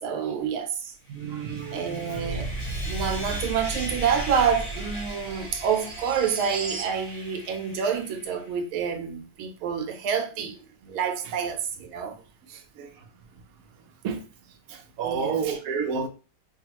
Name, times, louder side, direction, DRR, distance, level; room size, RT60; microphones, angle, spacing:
voice 1, 0.0-0.9 1.7-2.5 2.8-12.2 12.5-12.6 15.0-15.4, right 7 dB, 85° right, 1.6 m, -28 dB
Sawing, 1.1-8.5, left 1 dB, 70° left, 2.5 m, -40 dB
voice 2, 1.1-2.2 12.8-12.9 14.0-14.2 14.7-16.1, right 6 dB, 70° right, 0.8 m, -30 dB
sound 1, 2.1-7.0, right 3 dB, 25° right, 0.8 m, -35 dB
5.2 x 2.3 x 2.9 m
omnidirectional pair, 2.2 m